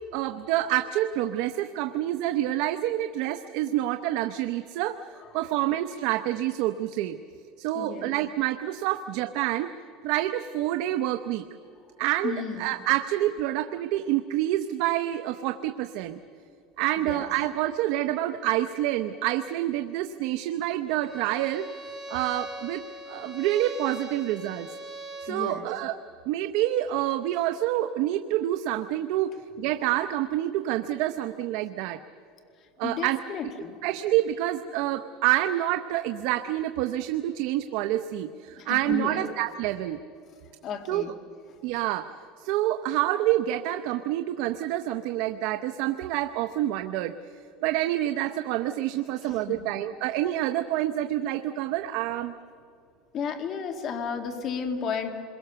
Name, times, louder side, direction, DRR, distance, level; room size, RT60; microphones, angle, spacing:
voice 1, 0.1-5.0 5.3-7.2 7.6-9.7 10.0-11.5 12.0-12.3 12.6-16.2 16.8-21.7 22.1-24.7 25.2-26.0 26.3-32.0 32.8-33.2 33.8-40.0 40.9-41.0 41.6-47.2 47.6-52.3, right 14 dB, 60° right, 8 dB, 0.8 m, -27 dB
voice 2, 7.7-8.1 12.2-12.7 17.0-17.3 25.3-25.7 32.8-33.8 38.6-39.2 40.6-41.1 49.2-49.6 53.1-55.1, left 6 dB, 35° left, 5 dB, 2.2 m, -33 dB
Bowed string instrument, 20.9-25.4, right 1 dB, ahead, 5.2 m, -41 dB
26.5 x 22.5 x 6.9 m, 2.5 s
cardioid pair, 155°, 0 cm